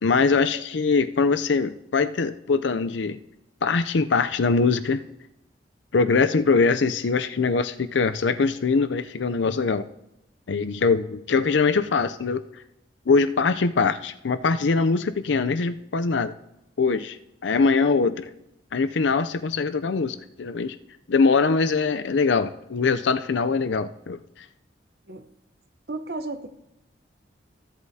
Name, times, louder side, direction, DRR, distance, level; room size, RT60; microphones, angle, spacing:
voice 1, 0.0-3.2 3.6-5.1 5.9-9.9 10.5-12.4 13.1-16.3 16.8-17.2 17.4-18.3 18.7-20.8 21.1-24.2, left 4 dB, 80° left, 11 dB, 0.5 m, -22 dB
voice 2, 25.9-26.5, right 2 dB, 60° right, 9 dB, 0.9 m, -33 dB
15.5 x 8.1 x 2.8 m, 0.87 s
head